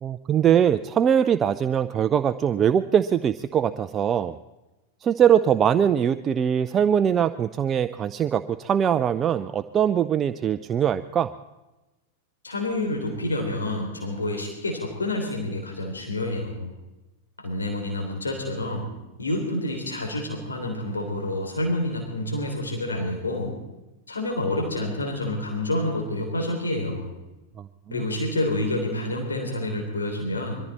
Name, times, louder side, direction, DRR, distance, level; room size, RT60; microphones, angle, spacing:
voice 1, 0.0-4.3 5.0-11.3, right 8 dB, 30° right, 11 dB, 0.5 m, -22 dB
voice 2, 12.4-16.7 17.4-18.9 19.2-23.5 24.1-27.1 27.9-30.5, left 1 dB, 85° left, 1 dB, 3.5 m, -28 dB
22.5 x 14.5 x 4.3 m, 1.1 s
figure-of-eight pair, 95°, 0 cm